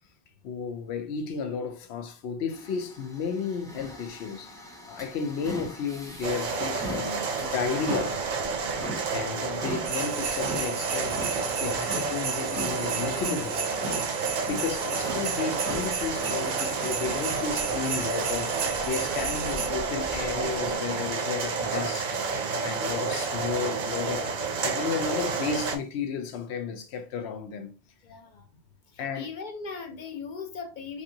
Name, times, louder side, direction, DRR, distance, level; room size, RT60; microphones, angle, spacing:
voice 1, 0.4-4.5 4.9-8.2 9.1-14.1 14.5-22.3 22.6-24.4 24.6-27.7 29.0-29.3, left 5 dB, 85° left, 0.9 m, -33 dB
sound 1, 2.5-20.7, right 1 dB, 5° left, 0.5 m, -41 dB
sound 2, 6.2-25.8, right 4 dB, 55° right, 0.6 m, -30 dB
sound 3, 9.8-19.7, right 6 dB, 80° right, 0.9 m, -35 dB
voice 2, 28.0-28.4 28.9-31.0, left 5 dB, 60° left, 0.6 m, -38 dB
3.2 x 2.7 x 2.7 m
omnidirectional pair, 1.1 m